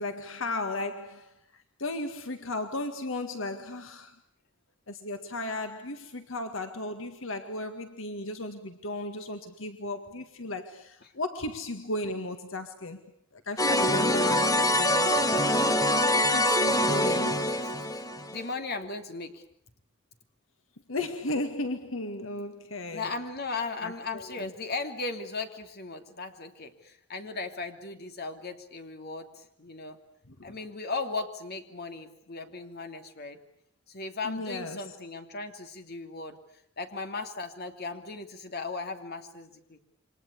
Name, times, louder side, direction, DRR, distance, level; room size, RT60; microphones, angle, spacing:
voice 1, 0.0-4.2 4.9-13.0 13.3-15.1 16.1-17.5 20.9-23.1 23.8-24.5 30.3-30.6 34.2-35.0, left 2 dB, 75° left, 8 dB, 1.9 m, -35 dB
sound 1, 13.6-18.5, left 1 dB, 20° left, 1.7 m, -24 dB
voice 2, 18.3-19.4 22.9-29.3 29.6-30.0 30.4-33.4 33.9-36.4 36.8-39.8, left 3 dB, 55° left, 6 dB, 2.9 m, -37 dB
28.5 x 25.0 x 8.3 m, 0.67 s
head